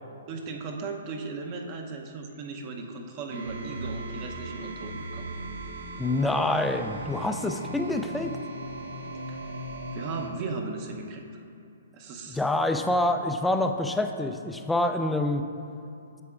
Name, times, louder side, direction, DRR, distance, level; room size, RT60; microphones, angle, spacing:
voice 1, 0.3-5.3 9.3-9.4 9.9-11.2 11.9-12.4, right 4 dB, 35° right, 3 dB, 0.7 m, -37 dB
sound 1, 3.3-10.3, right 1 dB, 70° right, 0.9 m, -38 dB
voice 2, 6.0-8.3 12.3-15.4, left 2 dB, 5° left, 6 dB, 0.3 m, -26 dB
8.3 x 6.6 x 2.4 m, 2.6 s
hypercardioid pair, 135°, 0 cm